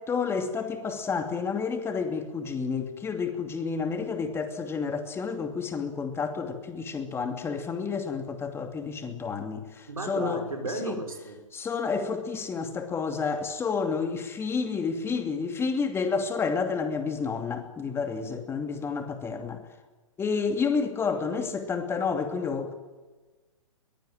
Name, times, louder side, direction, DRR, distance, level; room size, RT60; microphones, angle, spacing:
voice 1, 0.0-10.4 10.8-11.0 11.5-19.6 20.2-22.7, left 5 dB, 15° left, 2.6 m, -30 dB
voice 2, 9.9-11.4, right 3 dB, 85° right, 6.1 m, -34 dB
22.0 x 22.0 x 9.1 m
hypercardioid pair, 125°, 18 cm